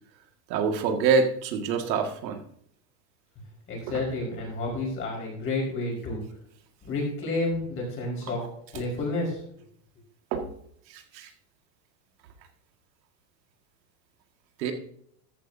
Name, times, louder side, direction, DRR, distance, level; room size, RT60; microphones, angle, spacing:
voice 1, 0.5-2.4 3.9-4.0 10.3-10.5 10.9-11.3 14.6-14.7, right 5 dB, 90° right, 5 dB, 2.0 m, -26 dB
voice 2, 3.7-6.2 6.8-8.4 8.7-9.4, left 2 dB, 25° left, -2 dB, 4.8 m, -30 dB
13.5 x 9.5 x 2.7 m, 0.66 s
supercardioid pair, 160°, 49 cm